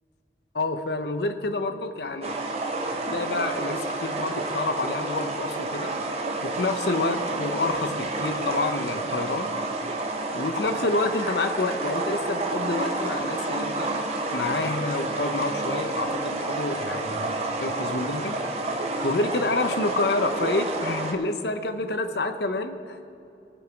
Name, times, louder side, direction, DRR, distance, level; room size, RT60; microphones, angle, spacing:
voice 1, 0.5-2.3 3.0-5.9 6.4-9.5 10.3-13.9 14.3-17.3 17.6-18.4 19.0-23.0, left 2 dB, 70° left, 8 dB, 0.8 m, -28 dB
sound 1, 2.2-21.1, right 2 dB, 35° right, 0.9 m, -29 dB
20.0 x 7.2 x 4.6 m, 2.7 s
head